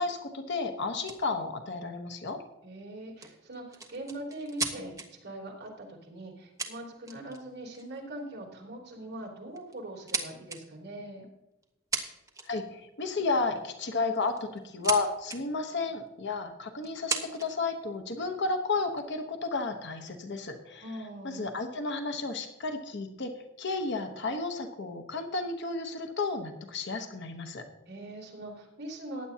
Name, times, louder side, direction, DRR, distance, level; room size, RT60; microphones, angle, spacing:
voice 1, 0.0-2.4 12.4-20.9 21.2-27.6, left 3 dB, 55° left, 6 dB, 1.0 m, -32 dB
sound 1, 1.0-1.2 3.2-5.1 6.2-6.3 6.6-7.4 7.7-8.0 8.9-9.1 9.6-10.6 11.6-11.7 11.9-12.7 14.1-15.0 15.2-15.4 16.1-16.2 16.8-17.6 18.3-19.0, right 4 dB, 15° right, 1.2 m, -35 dB
voice 2, 2.6-11.3 20.8-21.4 27.9-29.3, right 1 dB, 55° right, -2 dB, 3.3 m, -42 dB
15.5 x 10.0 x 2.8 m, 0.99 s
head